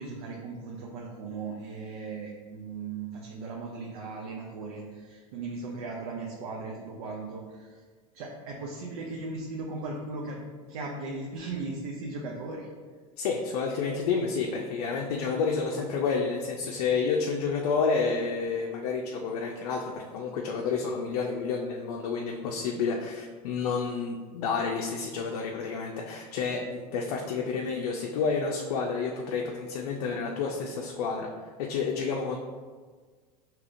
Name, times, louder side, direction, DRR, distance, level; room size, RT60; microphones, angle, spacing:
voice 1, 0.0-7.8 8.1-12.7, right 3 dB, 75° right, -2 dB, 0.7 m, -37 dB
voice 2, 13.2-32.4, left 5 dB, 75° left, 0 dB, 0.5 m, -30 dB
4.8 x 3.0 x 2.5 m, 1.5 s
hypercardioid pair, 105°, 19 cm